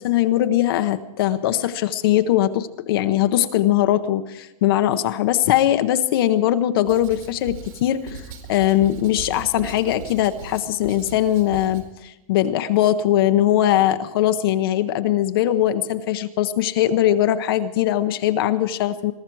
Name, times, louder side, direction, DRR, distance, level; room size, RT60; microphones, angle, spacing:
voice 1, 0.0-8.2 8.5-19.1, left 12 dB, 40° left, 9 dB, 0.7 m, -20 dB
Writing, 6.8-11.9, right 5 dB, 75° right, 4.4 m, -39 dB
22.5 x 13.0 x 4.6 m, 0.90 s
supercardioid pair, 175°, 18 cm